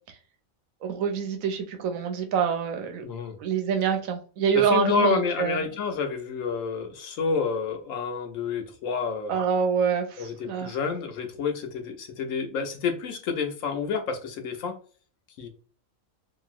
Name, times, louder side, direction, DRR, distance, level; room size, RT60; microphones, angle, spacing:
voice 1, 0.8-3.1 3.4-5.6 9.3-10.8, right 6 dB, 80° right, 1.0 m, -26 dB
voice 2, 3.0-3.3 4.5-9.4 10.2-14.8 15.4-15.5, left 5 dB, 80° left, 1.0 m, -29 dB
2.9 x 2.6 x 2.4 m
omnidirectional pair, 1.4 m